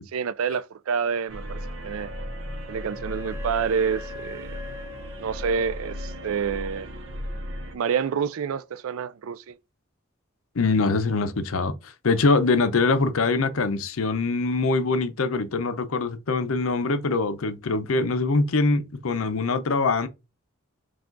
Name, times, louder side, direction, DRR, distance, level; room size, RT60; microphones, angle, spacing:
voice 1, 0.1-2.1 2.7-4.6 5.2-6.9 7.7-9.6, right 6 dB, 85° right, 0.4 m, -28 dB
sound 1, 1.3-7.7, equal, 70° right, 0.8 m, -36 dB
Wind instrument woodwind instrument, 2.0-6.7, left 3 dB, 10° right, 0.6 m, -43 dB
voice 2, 10.6-20.1, left 3 dB, 85° left, 0.6 m, -23 dB
4.8 x 2.4 x 3.8 m
head